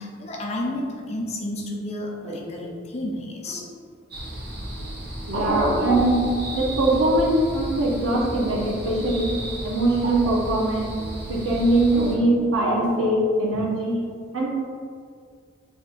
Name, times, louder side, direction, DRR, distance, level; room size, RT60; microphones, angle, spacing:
voice 1, 0.0-3.7, left 1 dB, 30° left, -1 dB, 0.4 m, -31 dB
voice 2, 2.2-2.7 5.3-6.2 6.5-9.4 9.6-10.9 11.3-14.0 14.3-14.5, right 1 dB, 85° right, -3 dB, 0.8 m, -22 dB
sound 1, 4.1-12.2, right 1 dB, 50° right, 0.6 m, -34 dB
2.8 x 2.6 x 3.8 m, 2.1 s
head